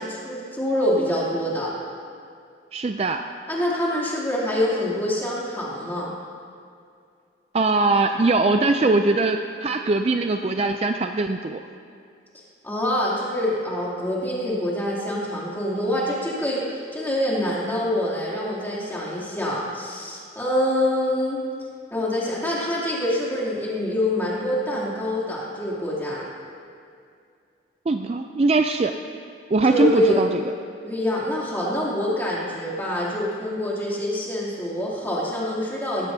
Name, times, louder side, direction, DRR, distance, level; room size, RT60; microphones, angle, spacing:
voice 1, 0.0-1.7 3.5-6.1 12.6-21.4 21.9-26.2 29.6-30.2 30.8-36.1, left 1 dB, 10° left, -7 dB, 2.8 m, -25 dB
voice 2, 2.7-3.2 7.5-11.6 27.9-28.9 29.5-30.4, right 3 dB, 35° right, 6 dB, 0.4 m, -21 dB
18.5 x 15.5 x 2.8 m, 2.4 s
head